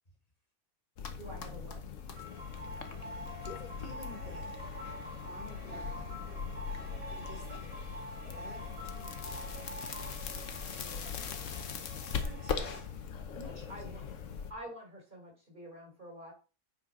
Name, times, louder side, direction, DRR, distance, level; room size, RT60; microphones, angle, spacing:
sound 1, 1.0-14.5, left 6 dB, 65° left, 1.3 m, -40 dB
voice 1, 1.2-1.8 13.7-14.0 14.5-16.3, equal, 35° right, 0 dB, 3.7 m, -47 dB
sound 2, 2.1-12.8, equal, 75° right, 4.4 m, -46 dB
voice 2, 3.4-4.5 5.2-7.7 8.2-9.5 10.7-11.1 12.1-12.8 13.3-13.7, left 2 dB, 30° left, 2 dB, 1.8 m, -51 dB
8.5 x 4.4 x 5.2 m, 0.33 s
omnidirectional pair, 1.5 m